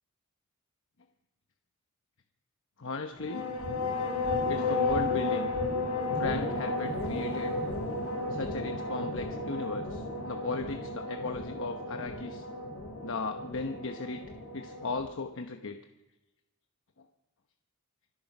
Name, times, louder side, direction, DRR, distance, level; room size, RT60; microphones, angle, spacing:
voice 1, 2.8-3.5 4.5-5.5 6.2-7.6 8.3-12.4 13.0-14.2 14.5-15.8, left 3 dB, 60° left, 5 dB, 1.0 m, -36 dB
sound 1, 3.2-15.1, left 2 dB, 85° left, 4.6 m, -33 dB
25.0 x 9.6 x 6.0 m, 0.97 s
head